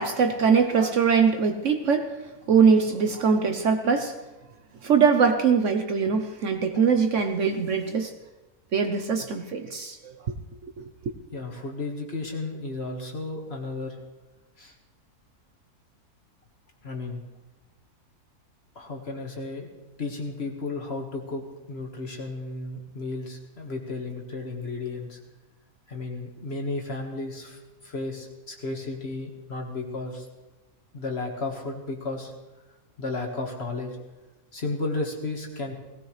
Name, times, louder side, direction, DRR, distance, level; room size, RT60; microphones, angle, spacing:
voice 1, 0.0-2.1 2.5-4.1 4.8-8.1 8.7-10.3 10.8-10.9, right 6 dB, 55° right, 6 dB, 1.1 m, -22 dB
voice 2, 11.3-14.0 14.6-14.7 16.8-17.2 18.8-19.7 20.0-25.2 25.9-30.3 30.9-32.3 33.0-34.0 34.5-35.7, left 3 dB, 40° left, 1 dB, 2.0 m, -33 dB
18.0 x 17.0 x 3.3 m, 1.1 s
omnidirectional pair, 1.6 m